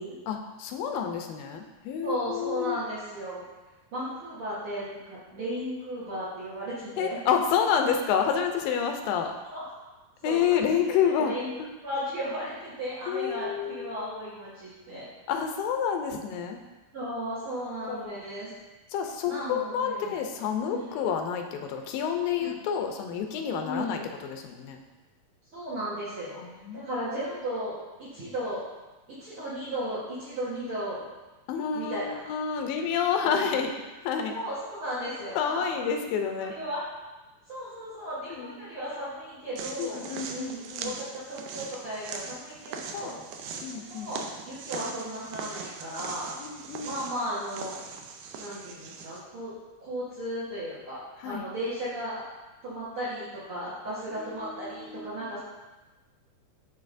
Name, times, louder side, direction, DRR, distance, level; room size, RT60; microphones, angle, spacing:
voice 1, 0.3-2.8 7.0-9.3 10.2-11.3 13.1-13.9 15.3-16.6 17.9-18.3 18.9-24.8 26.4-26.9 31.5-33.7 34.0-34.4 35.4-36.5 38.3-38.5 39.8-40.9 42.9-43.2 43.6-44.1 46.0-46.1 46.4-46.9 51.2-51.4 54.2-55.2, left 7 dB, 85° left, 4 dB, 2.3 m, -29 dB
voice 2, 2.0-3.4 3.9-7.2 9.4-9.6 10.2-10.6 11.2-11.5 11.8-15.1 16.9-18.5 19.3-20.2 20.6-21.0 22.4-22.6 23.6-24.1 25.5-26.4 26.7-27.7 28.0-28.6 29.2-31.0 31.7-32.2 33.2-33.7 34.3-35.6 36.4-36.8 37.5-43.1 43.7-46.3 46.8-47.8 48.4-49.5 49.8-51.0 51.2-52.2 52.6-55.4, equal, 60° right, -10 dB, 1.5 m, -35 dB
sound 1, 39.6-49.2, right 5 dB, 80° right, 1.9 m, -40 dB
10.5 x 4.0 x 2.5 m, 1.1 s
omnidirectional pair, 4.1 m